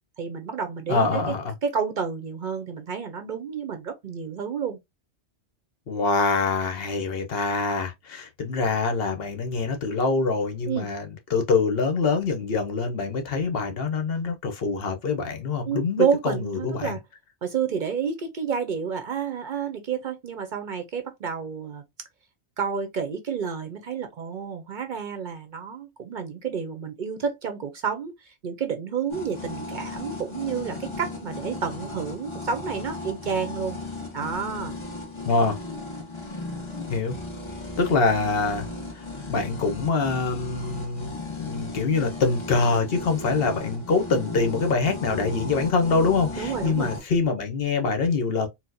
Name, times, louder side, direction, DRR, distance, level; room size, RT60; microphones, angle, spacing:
voice 1, 0.2-1.2 1.6-4.8 10.7-10.9 15.6-17.0 17.4-21.8 22.6-33.8 34.1-34.7 46.4-46.9, right 7 dB, 55° right, 0.7 m, -30 dB
voice 2, 0.9-1.5 5.9-17.0 35.2-35.6 36.9-37.1 37.8-38.7 39.0-39.1 39.3-41.1 41.4-48.5, left 4 dB, 65° left, 1.0 m, -25 dB
sound 1, 29.1-47.0, left 3 dB, 30° left, 0.9 m, -36 dB
4.3 x 2.1 x 2.6 m
omnidirectional pair, 1.1 m